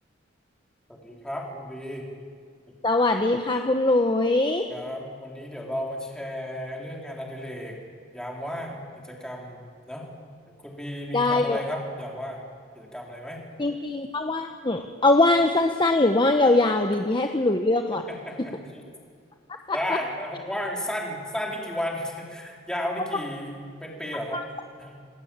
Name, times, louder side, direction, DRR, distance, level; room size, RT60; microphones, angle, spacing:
voice 1, 1.0-2.1 4.7-7.8 8.1-9.6 9.9-10.1 10.6-12.4 12.7-13.4 18.2-18.8 19.7-24.4 24.8-24.9, equal, 5° left, -1 dB, 4.2 m, -33 dB
voice 2, 2.8-4.7 11.1-11.6 13.6-18.0 19.7-19.8 24.3-24.4, left 2 dB, 25° left, 5 dB, 1.1 m, -22 dB
28.0 x 19.0 x 8.9 m, 2.1 s
head